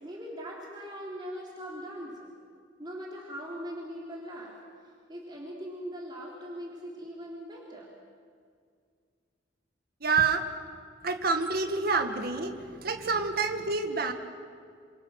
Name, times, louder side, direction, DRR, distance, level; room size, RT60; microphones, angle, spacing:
voice 1, 0.0-2.3 2.8-4.5 5.1-7.9 12.3-12.4, equal, 25° right, -4 dB, 3.9 m, -40 dB
voice 2, 10.0-10.4 11.0-12.5 12.8-14.1, right 4 dB, 55° right, 5 dB, 1.9 m, -27 dB
28.0 x 27.0 x 6.6 m, 2.1 s
head